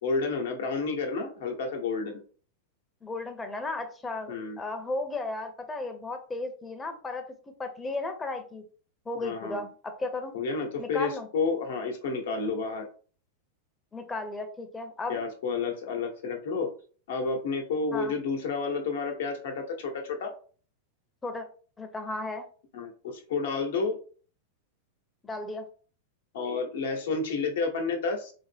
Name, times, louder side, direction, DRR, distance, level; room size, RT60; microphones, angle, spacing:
voice 1, 0.0-2.2 4.3-4.6 9.2-9.6 10.3-12.9 15.1-16.7 17.1-20.3 22.7-24.0 26.3-28.3, left 4 dB, 70° left, 3 dB, 0.9 m, -30 dB
voice 2, 3.0-8.6 9.1-10.3 10.8-11.3 13.9-15.2 17.9-18.1 21.2-21.5 21.8-22.5 25.2-25.7, left 2 dB, 15° left, 5 dB, 0.7 m, -35 dB
4.0 x 2.1 x 3.3 m, 0.40 s
hypercardioid pair, 100°, 0 cm